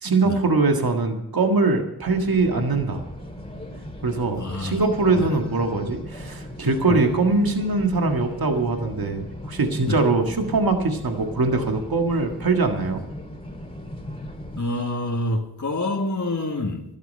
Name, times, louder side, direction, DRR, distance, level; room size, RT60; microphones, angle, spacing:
voice 1, 0.0-3.1 4.0-13.0, right 3 dB, 65° right, 4 dB, 1.8 m, -22 dB
sound 1, 2.0-14.6, left 1 dB, 15° left, 2.5 m, -38 dB
voice 2, 4.4-4.8 5.1-5.3 6.9-7.0 9.9-10.0 14.6-16.8, left 2 dB, 45° left, 1 dB, 1.8 m, -27 dB
12.5 x 11.5 x 5.5 m, 0.84 s
cardioid pair, 55°, 39 cm